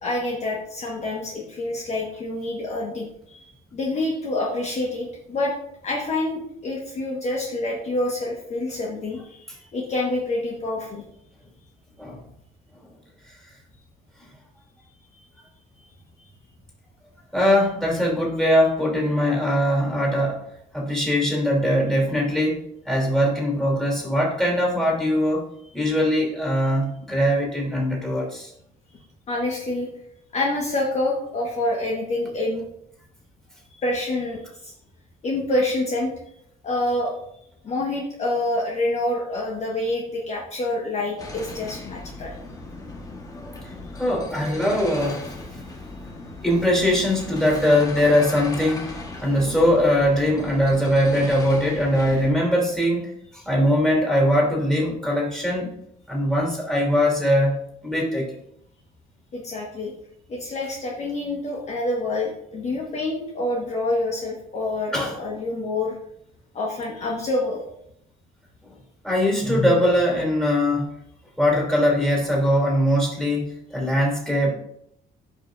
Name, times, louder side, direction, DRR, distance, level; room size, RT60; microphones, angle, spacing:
voice 1, 0.0-3.4 3.7-5.5 5.8-9.4 9.7-11.0 25.6-25.7 29.3-29.9 30.3-32.7 33.7-34.7 35.2-36.1 36.6-37.1 37.6-42.3 59.3-59.9 60.3-65.9 66.5-67.6, left 2 dB, 40° left, -2 dB, 1.4 m, -27 dB
voice 2, 17.3-20.4 20.7-22.6 22.8-25.4 25.7-28.5 43.9-45.3 46.4-55.7 56.1-57.6 57.8-58.3 64.9-65.1 69.0-70.9 71.4-74.5, equal, 5° left, -1 dB, 3.1 m, -21 dB
sound 1, 41.2-52.3, left 2 dB, 20° left, 1.4 m, -38 dB
12.0 x 5.5 x 2.6 m, 0.75 s
cardioid pair, 110°, 17 cm